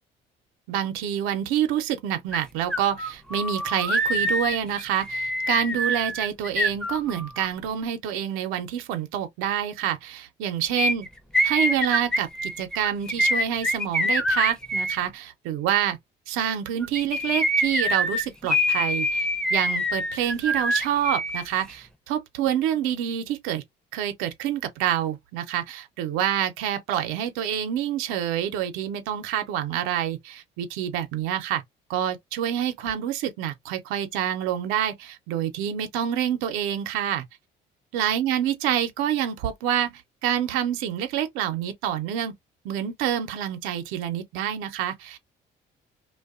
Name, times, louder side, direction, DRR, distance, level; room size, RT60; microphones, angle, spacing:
voice 1, 0.7-11.1 11.4-16.0 16.3-23.6 23.9-31.6 31.9-37.2 37.9-42.3 42.6-45.2, right 10 dB, 85° right, 0.6 m, -27 dB
sound 1, 2.3-2.4 2.7-7.5 10.8-15.0 16.8-21.4 21.7-21.8, equal, 5° left, 0.5 m, -25 dB
2.6 x 2.2 x 2.3 m
supercardioid pair, 70°, 20 cm